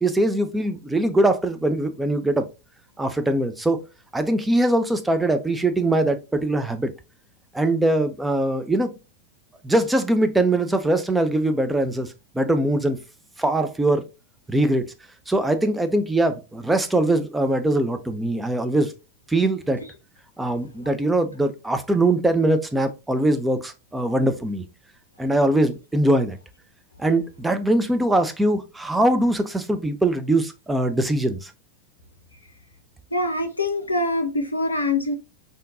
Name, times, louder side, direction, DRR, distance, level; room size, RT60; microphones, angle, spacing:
voice 1, 0.0-2.5 3.0-3.8 4.1-6.9 7.5-8.9 9.6-13.0 13.4-14.0 14.5-14.9 15.3-18.9 19.3-19.8 20.4-24.6 25.2-26.4 27.0-31.5, right 1 dB, 5° right, 0.4 m, -22 dB
voice 2, 33.1-35.1, left 2 dB, 80° left, 0.5 m, -24 dB
3.6 x 2.6 x 2.5 m
figure-of-eight pair, 90°, 0 cm